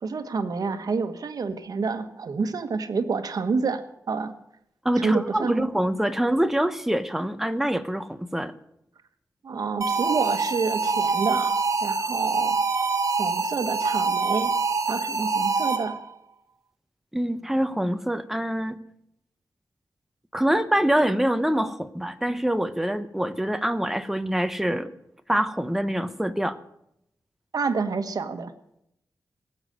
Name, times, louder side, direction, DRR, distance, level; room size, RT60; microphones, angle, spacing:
voice 1, 0.0-4.3 5.0-5.7 9.4-11.5 11.8-12.6 13.2-14.5 14.9-16.0 27.5-28.5, right 4 dB, 70° right, 7 dB, 1.3 m, -28 dB
voice 2, 4.8-8.5 17.1-18.8 20.3-24.9 25.3-26.6, right 1 dB, 5° right, 10 dB, 0.8 m, -25 dB
sound 1, 9.8-16.1, right 4 dB, 50° right, 1.4 m, -25 dB
18.0 x 8.0 x 8.0 m, 0.78 s
wide cardioid pair, 140°, 7 cm